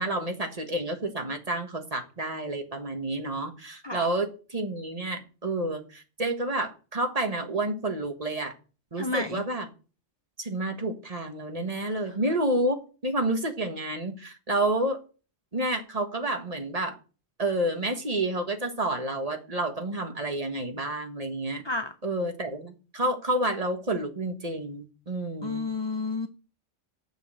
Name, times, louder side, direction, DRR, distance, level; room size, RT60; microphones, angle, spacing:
voice 1, 0.0-8.5 8.9-9.7 10.4-15.0 15.5-17.0 17.4-21.6 22.0-25.6, right 1 dB, 35° right, 1.5 m, -29 dB
voice 2, 9.0-9.4 11.8-12.1 21.6-21.9 25.4-26.3, left 3 dB, 30° left, 0.5 m, -31 dB
7.3 x 6.2 x 7.6 m
omnidirectional pair, 1.2 m